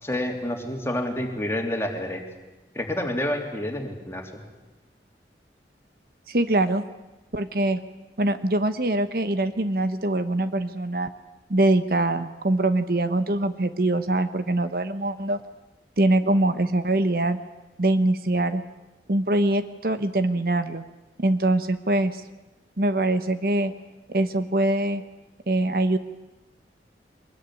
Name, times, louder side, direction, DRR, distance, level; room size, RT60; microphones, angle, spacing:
voice 1, 0.0-2.2 2.7-4.2, left 1 dB, 15° left, 2 dB, 3.2 m, -28 dB
voice 2, 6.3-6.8 7.3-7.8 8.2-11.1 11.5-15.4 16.0-17.4 17.8-18.6 19.1-20.8 21.2-22.2 22.8-23.7 24.1-25.0 25.5-26.0, right 1 dB, 55° right, 10 dB, 1.1 m, -23 dB
23.5 x 21.0 x 9.8 m, 1.1 s
head